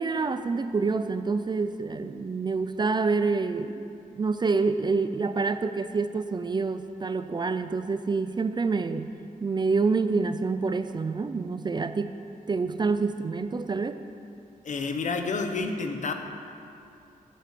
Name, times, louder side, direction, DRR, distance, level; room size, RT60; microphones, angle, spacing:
voice 1, 0.0-3.9 4.1-9.1 9.4-12.1 12.5-14.0, right 4 dB, 30° right, 10 dB, 0.4 m, -27 dB
voice 2, 14.6-16.1, left 4 dB, 55° left, 5 dB, 1.0 m, -29 dB
11.5 x 8.8 x 6.7 m, 2.5 s
wide cardioid pair, 175°, 15 cm